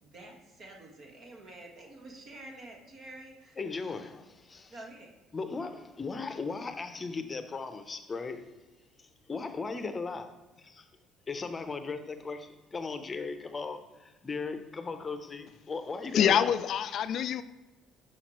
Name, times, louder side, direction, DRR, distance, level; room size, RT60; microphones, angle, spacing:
voice 1, 0.0-3.6 4.7-5.1, right 2 dB, 55° right, 1.6 m, -48 dB
voice 2, 3.6-4.8 5.3-8.4 9.0-10.3 10.6-10.9 11.3-16.5, left 4 dB, 30° left, 0.6 m, -37 dB
voice 3, 16.1-17.4, left 9 dB, 60° left, 0.3 m, -25 dB
6.4 x 5.8 x 3.0 m
supercardioid pair, 80°, 0 cm